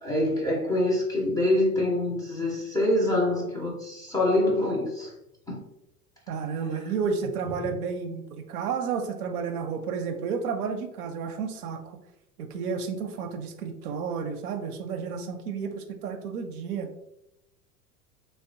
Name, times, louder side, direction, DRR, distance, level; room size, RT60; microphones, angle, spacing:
voice 1, 0.0-5.1 5.5-5.6, left 1 dB, 10° left, -4 dB, 0.5 m, -25 dB
voice 2, 6.3-12.0 12.4-16.9, right 5 dB, 65° right, 6 dB, 0.6 m, -31 dB
3.4 x 2.1 x 2.5 m, 0.84 s
figure-of-eight pair, 90°, 48 cm